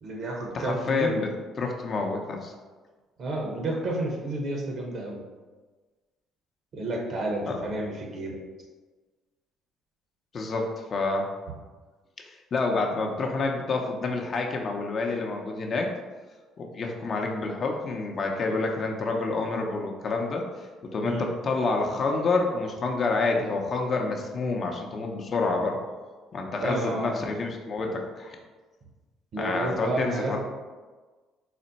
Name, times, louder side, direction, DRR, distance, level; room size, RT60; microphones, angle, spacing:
voice 1, 0.0-1.1 3.2-5.2 6.7-8.4 21.1-21.2 26.6-27.3 29.3-30.4, right 2 dB, 55° right, 0 dB, 1.0 m, -30 dB
voice 2, 0.5-1.3 1.6-2.5 7.5-7.6 10.3-11.3 12.5-15.9 16.6-20.4 20.9-25.8 26.3-28.4 29.4-30.4, left 3 dB, 45° left, 2 dB, 0.6 m, -28 dB
4.1 x 2.1 x 4.0 m, 1.3 s
cardioid pair, 90°, 0 cm